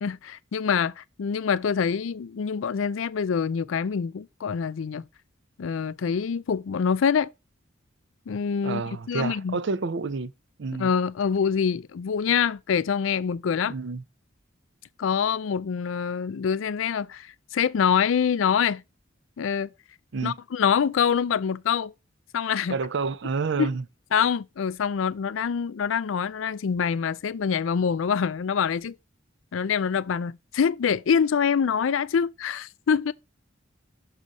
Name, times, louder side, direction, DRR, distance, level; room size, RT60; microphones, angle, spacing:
voice 1, 0.0-5.0 5.6-7.3 8.3-8.8 9.1-9.6 10.8-13.7 15.0-18.8 19.4-19.7 20.2-21.9 22.3-22.8 23.6-23.7 24.1-29.0 29.5-33.1, left 7 dB, 75° left, 0.4 m, -25 dB
voice 2, 8.6-10.3 10.6-10.9 13.7-14.0 20.1-20.4 22.7-23.8, right 4 dB, 65° right, 0.5 m, -29 dB
6.4 x 4.9 x 4.0 m
head